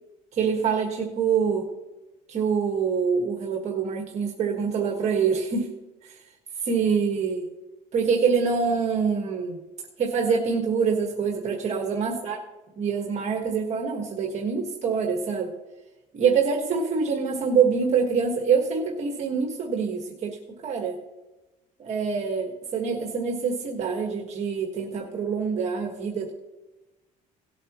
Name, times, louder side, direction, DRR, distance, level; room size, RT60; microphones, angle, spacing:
voice 1, 0.3-1.6 2.3-5.7 6.0-6.2 6.6-7.5 7.9-9.6 10.0-12.4 12.8-15.5 16.1-20.4 20.6-21.0 21.8-26.3, right 6 dB, 45° right, 2 dB, 1.5 m, -25 dB
18.0 x 8.0 x 3.0 m, 1.1 s
cardioid pair, 140°, 16 cm